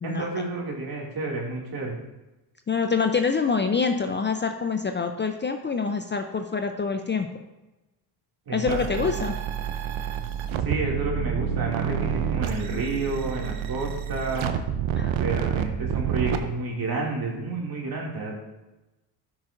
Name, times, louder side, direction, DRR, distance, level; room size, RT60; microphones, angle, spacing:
voice 1, 0.0-2.0 8.5-8.8 10.6-14.5 15.2-18.3, right 3 dB, 50° right, -2 dB, 2.5 m, -30 dB
voice 2, 2.7-7.3 8.5-9.4 15.0-15.2, left 5 dB, 25° left, 6 dB, 0.5 m, -26 dB
sound 1, 8.7-16.4, right 9 dB, 75° right, 0.8 m, -28 dB
12.5 x 6.0 x 2.6 m, 1.0 s
supercardioid pair, 70°, 48 cm